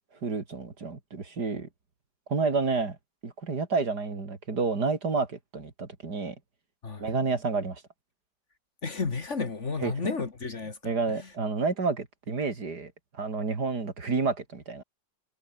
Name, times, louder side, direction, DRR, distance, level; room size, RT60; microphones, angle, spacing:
voice 1, 0.2-1.7 2.3-3.0 3.2-6.4 7.0-7.8 9.8-9.9 10.8-14.8, right 4 dB, 75° right, 3.8 m, -29 dB
voice 2, 8.8-11.3, left 4 dB, 45° left, 2.1 m, -33 dB
omnidirectional pair, 1.8 m